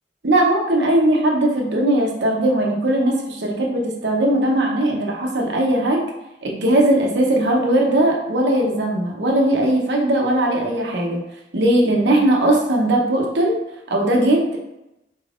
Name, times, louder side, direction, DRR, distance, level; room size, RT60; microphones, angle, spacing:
voice 1, 0.2-6.0 6.4-11.2 11.5-13.6 13.9-14.7, right 1 dB, 75° right, 0 dB, 0.8 m, -19 dB
4.6 x 3.4 x 2.5 m, 0.91 s
head